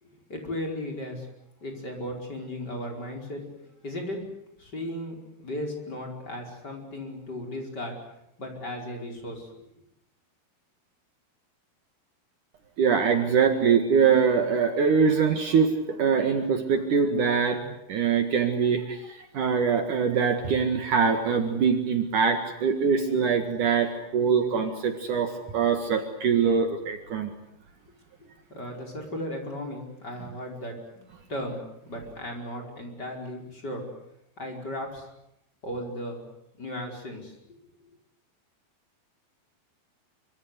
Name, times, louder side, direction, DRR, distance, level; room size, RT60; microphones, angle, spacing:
voice 1, 0.0-1.3 1.6-3.4 3.8-4.2 4.6-7.9 8.4-9.7 28.5-33.9 34.4-35.1 35.6-36.2 36.6-37.3, left 1 dB, 25° left, 2 dB, 5.3 m, -36 dB
voice 2, 12.8-27.3, right 6 dB, 55° right, 6 dB, 3.0 m, -23 dB
25.5 x 25.0 x 8.2 m, 0.79 s
omnidirectional pair, 4.6 m